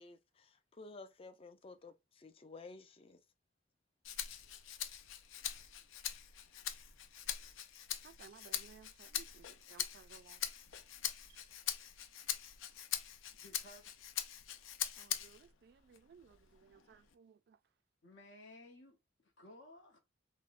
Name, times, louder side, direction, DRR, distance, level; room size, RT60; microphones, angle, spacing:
voice 1, 0.0-3.2, left 3 dB, 30° left, 0.4 m, -53 dB
Rattle (instrument), 4.0-15.5 15.9-17.1, left 10 dB, 90° left, 0.5 m, -43 dB
voice 2, 8.0-10.4 11.3-11.5 15.0-17.6, right 6 dB, 55° right, 0.3 m, -60 dB
voice 3, 13.3-13.9 18.0-20.0, left 1 dB, 65° left, 0.9 m, -57 dB
5.6 x 2.1 x 2.4 m
head